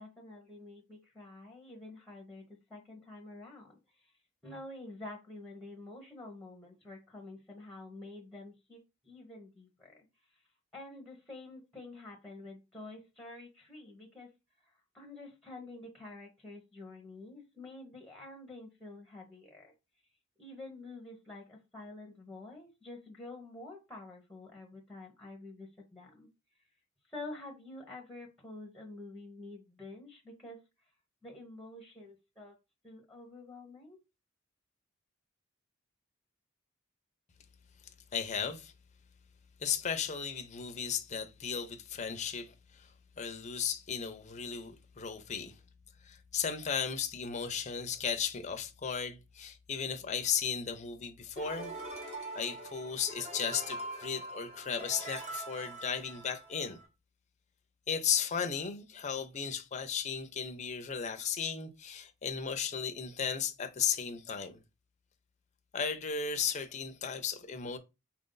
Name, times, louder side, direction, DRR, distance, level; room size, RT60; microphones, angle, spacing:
voice 1, 0.0-4.1 4.4-10.0 10.7-14.3 14.6-19.7 20.4-26.3 27.1-30.6 31.2-32.6 32.8-34.0, left 2 dB, 5° left, 0.9 m, -48 dB
voice 2, 38.1-38.7 39.6-45.6 46.0-51.7 52.3-56.8 57.9-64.6 65.7-67.8, left 7 dB, 35° left, 0.6 m, -35 dB
sound 1, 51.4-56.9, right 2 dB, 30° right, 1.1 m, -43 dB
4.3 x 2.6 x 3.8 m
head